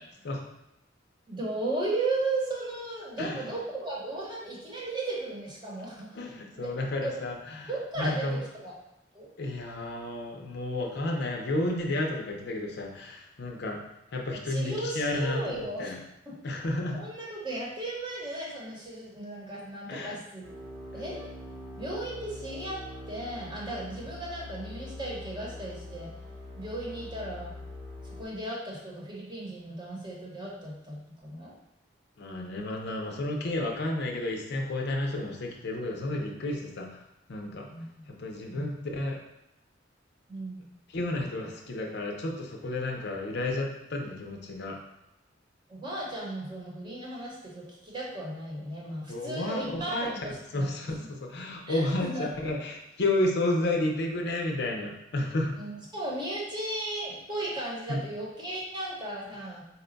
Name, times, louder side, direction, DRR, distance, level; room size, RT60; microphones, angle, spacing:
voice 1, 1.3-6.2 6.5-7.2 7.7-8.8 9.1-9.3 14.5-15.9 16.2-16.4 16.9-20.4 20.9-21.3 21.8-26.1 26.6-27.5 28.2-31.5 37.7-38.1 38.5-38.8 40.3-40.6 45.7-50.7 51.0-51.1 51.7-52.3 55.6-59.6, right 2 dB, 25° right, -4 dB, 1.0 m, -35 dB
voice 2, 3.2-3.5 6.1-7.7 8.0-8.4 9.4-13.8 14.1-15.5 15.8-16.0 16.4-17.0 19.9-20.2 32.2-37.0 37.3-37.7 38.1-39.2 40.9-44.8 49.1-50.1 50.5-55.5 57.9-58.0, left 2 dB, 60° left, 1 dB, 0.6 m, -31 dB
sound 1, 20.4-28.2, left 1 dB, 90° right, 1.4 m, -43 dB
4.1 x 2.2 x 3.9 m, 0.88 s
head